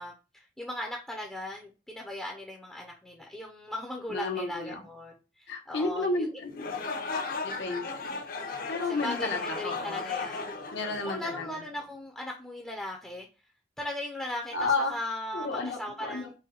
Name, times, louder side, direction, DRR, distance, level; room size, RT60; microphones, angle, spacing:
voice 1, 0.0-6.3 8.9-10.5 11.0-13.3 13.8-16.3, left 1 dB, 5° left, 0 dB, 0.5 m, -38 dB
voice 2, 4.1-4.8 5.5-6.7 7.4-8.2 8.7-10.0 10.7-11.6 14.5-14.9 15.3-16.3, left 3 dB, 80° left, 2 dB, 1.0 m, -32 dB
sound 1, 6.5-11.7, left 4 dB, 50° left, 0.7 m, -36 dB
4.2 x 2.1 x 3.8 m, 0.31 s
head